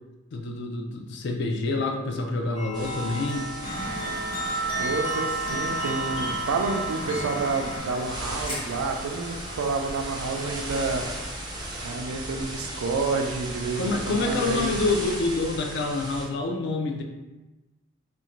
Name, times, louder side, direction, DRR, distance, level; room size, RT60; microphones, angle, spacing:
voice 1, 0.3-3.5 13.8-17.0, left 3 dB, 55° left, 3 dB, 0.3 m, -27 dB
sound 1, 2.5-7.8, right 2 dB, 75° left, 0.7 m, -31 dB
sound 2, 2.7-16.2, right 1 dB, 20° right, 0.4 m, -37 dB
sound 3, 3.6-11.9, equal, 30° left, 0.8 m, -39 dB
voice 2, 4.8-11.1 11.8-14.7, right 3 dB, 90° right, 3 dB, 0.4 m, -29 dB
2.5 x 2.1 x 2.9 m, 1.1 s
head